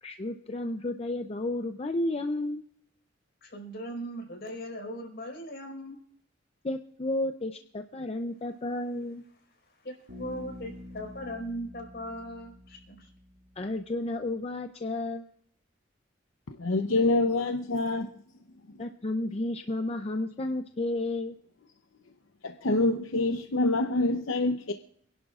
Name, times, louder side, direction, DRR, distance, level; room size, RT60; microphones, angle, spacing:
voice 1, 0.0-2.6 6.6-9.2 13.6-15.3 18.8-21.3, left 2 dB, 30° left, 0.6 m, -32 dB
voice 2, 3.4-6.0 9.8-13.1, equal, 55° left, 4.8 m, -39 dB
Bass guitar, 10.1-13.8, left 1 dB, 70° right, 6.0 m, -47 dB
voice 3, 16.5-18.1 22.4-24.7, left 2 dB, 85° left, 0.8 m, -26 dB
27.5 x 11.0 x 2.4 m
head